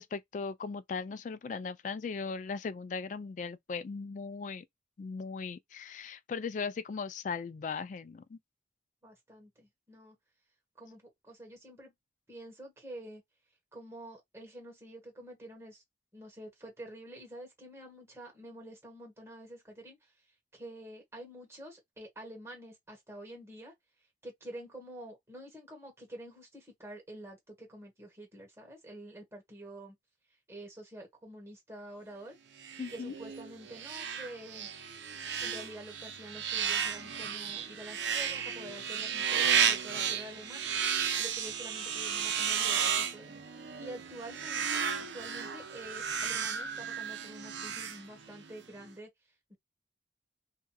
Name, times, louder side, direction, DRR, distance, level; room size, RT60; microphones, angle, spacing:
voice 1, 0.0-4.6 5.0-8.4 32.8-33.1, left 5 dB, 45° left, 0.3 m, -38 dB
voice 2, 9.0-10.1 10.8-11.9 12.3-13.2 13.7-15.8 16.1-20.1 20.5-23.7 24.2-30.0 30.5-32.4 32.9-34.7 35.4-43.4 43.8-44.8 45.1-49.1 49.5-49.6, right 1 dB, 15° right, 1.2 m, -48 dB
sound 1, 32.6-48.5, right 7 dB, 85° right, 0.6 m, -33 dB
2.8 x 2.5 x 2.3 m
head